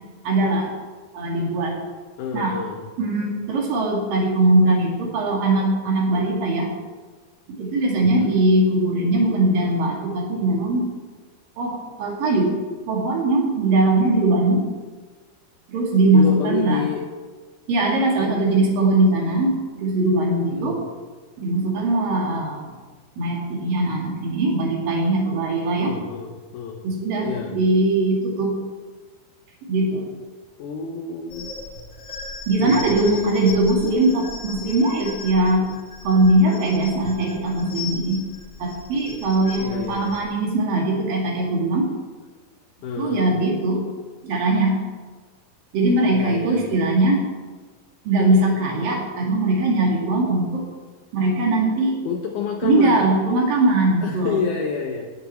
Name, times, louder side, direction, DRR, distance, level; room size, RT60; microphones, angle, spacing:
voice 1, 0.2-0.7 1.1-1.8 2.3-2.6 3.0-6.7 7.6-10.9 11.6-12.6 12.9-14.6 15.7-16.9 17.7-20.8 21.4-22.7 23.2-26.0 26.8-28.6 29.7-30.1 32.5-35.7 36.0-38.2 38.6-41.9 43.0-43.8 44.2-44.8 45.7-47.2 48.1-50.7 51.1-52.0 52.6-54.4, right 2 dB, 65° right, -1 dB, 4.1 m, -20 dB
voice 2, 2.2-2.9 8.0-8.4 16.1-17.0 18.2-19.1 20.5-20.8 25.8-26.8 27.2-27.6 30.6-31.6 32.6-33.6 39.6-40.1 42.8-43.3 46.1-46.9 52.1-53.1 54.0-55.1, left 6 dB, 70° left, 2 dB, 2.1 m, -29 dB
sound 1, 31.3-40.2, left 4 dB, 25° left, 2.1 m, -38 dB
16.5 x 10.5 x 4.5 m, 1.4 s
omnidirectional pair, 4.3 m